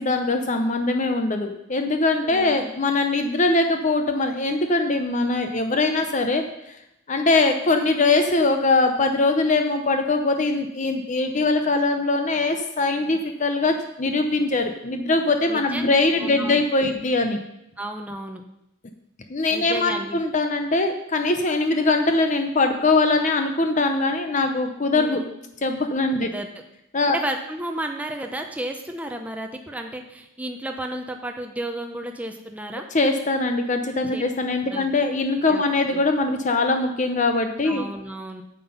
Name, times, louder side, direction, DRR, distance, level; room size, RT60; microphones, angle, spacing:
voice 1, 0.0-6.8 7.1-17.4 19.3-25.2 25.6-26.3 26.9-27.2 32.9-37.8, left 3 dB, 35° left, 6 dB, 0.7 m, -22 dB
voice 2, 2.2-2.7 15.5-15.9 16.2-17.0 17.8-18.4 19.5-20.2 24.9-25.3 26.2-26.5 27.1-32.9 34.1-34.2 34.7-34.9 35.5-35.6 35.9-36.0 37.6-38.4, right 1 dB, 5° right, 4 dB, 0.7 m, -32 dB
9.3 x 7.7 x 5.5 m, 0.84 s
head